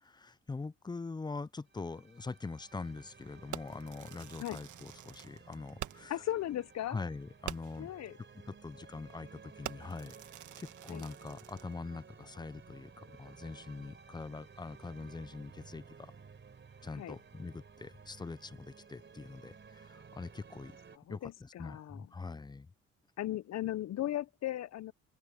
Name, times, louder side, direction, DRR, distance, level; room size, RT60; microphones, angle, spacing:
voice 1, 0.0-6.2 6.9-7.9 8.5-10.2 10.6-16.1 16.8-20.7 21.1-22.7, left 4 dB, 15° left, 0.4 m, -43 dB
sound 1, 1.7-21.0, right 5 dB, 40° right, 3.8 m, -56 dB
Fireworks, 3.5-6.2 6.6-6.7 7.0-7.1 7.4-7.9 8.5-8.7 9.0-9.3 9.6-11.7, right 13 dB, 75° right, 1.3 m, -46 dB
voice 2, 6.1-7.0 7.8-8.2 10.9-11.1 16.9-17.2 20.9-22.1 23.2-24.9, left 13 dB, 60° left, 0.7 m, -37 dB
cardioid pair, 90°, 30 cm